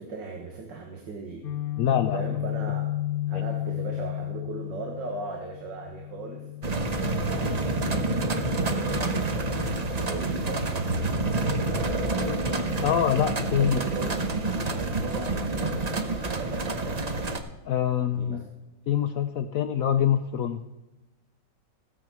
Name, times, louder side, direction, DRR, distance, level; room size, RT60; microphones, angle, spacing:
voice 1, 0.0-1.4 2.1-2.9 3.3-6.4 7.3-10.6 13.6-14.2 14.6-15.9 16.2-16.8 18.1-18.4, right 3 dB, 80° right, 2 dB, 2.0 m, -38 dB
Guitar, 1.4-9.3, left 14 dB, 35° left, 1.1 m, -34 dB
voice 2, 1.8-2.2 3.3-3.4 12.8-13.8 17.6-18.5 18.9-20.6, left 9 dB, 70° left, 8 dB, 0.8 m, -25 dB
sound 1, 6.6-17.4, right 2 dB, 35° right, 0.6 m, -28 dB
16.5 x 7.3 x 6.0 m, 0.98 s
omnidirectional pair, 2.0 m